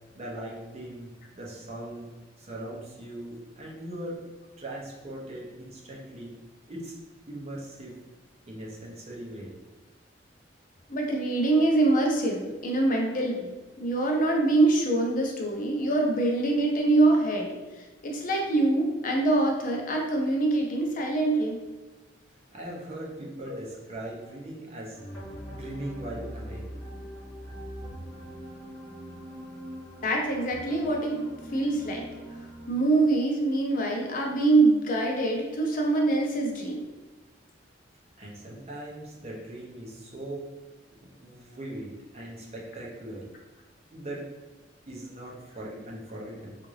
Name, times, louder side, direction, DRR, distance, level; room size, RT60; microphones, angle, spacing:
voice 1, 0.1-2.1 2.4-4.2 4.6-6.3 6.7-6.9 7.3-8.0 8.5-9.5 22.5-25.0 25.5-26.7 38.2-40.5 41.0-43.3 43.9-44.3 44.9-46.6, right 1 dB, 35° right, -3 dB, 0.7 m, -40 dB
voice 2, 10.9-21.6 30.0-32.0 32.4-36.8, right 2 dB, 45° left, 0 dB, 0.5 m, -25 dB
sound 1, 24.9-32.7, equal, 10° left, 1.3 m, -42 dB
3.6 x 2.4 x 3.1 m, 1.2 s
head